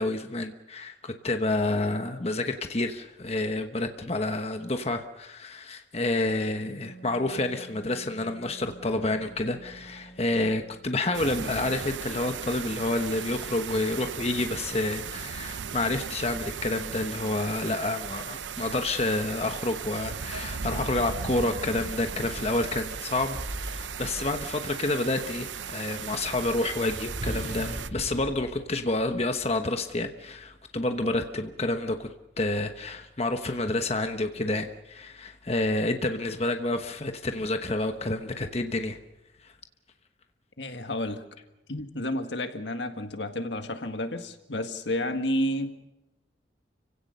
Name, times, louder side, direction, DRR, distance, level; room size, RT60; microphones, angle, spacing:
voice 1, 0.0-32.1 32.4-39.0, left 2 dB, 35° left, 6 dB, 1.1 m, -29 dB
Wind instrument woodwind instrument, 6.6-11.1, right 4 dB, 55° left, 3.2 m, -49 dB
sound 1, 11.1-27.9, right 7 dB, 90° right, 0.7 m, -37 dB
sound 2, 21.7-25.0 25.9-29.5, equal, 75° right, 6.6 m, -40 dB
voice 2, 40.6-41.3 41.7-45.7, left 1 dB, 75° left, 7 dB, 1.8 m, -31 dB
29.5 x 17.0 x 6.7 m, 0.97 s
head